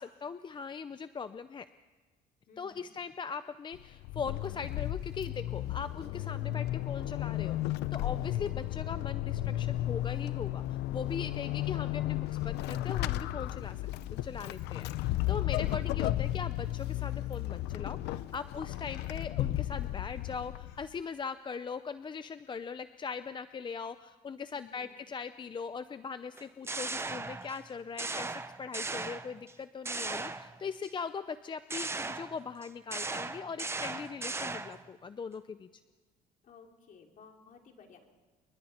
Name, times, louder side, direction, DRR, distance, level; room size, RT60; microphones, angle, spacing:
voice 1, 0.0-1.7 2.6-35.7, left 5 dB, 30° left, 12 dB, 0.6 m, -40 dB
voice 2, 2.5-2.9 8.2-8.6 11.4-11.8 24.5-24.9 29.8-30.2 36.4-38.0, left 5 dB, 55° left, 2 dB, 3.2 m, -57 dB
Vehicle / Accelerating revving vroom / Squeak, 3.7-20.9, left 15 dB, 85° left, 0.7 m, -34 dB
sound 1, 26.4-27.7 28.0-29.5 29.9-30.9 31.7-34.9, right 3 dB, 15° right, 0.8 m, -37 dB
28.5 x 22.5 x 4.4 m, 1.4 s
cardioid pair, 110°, 17 cm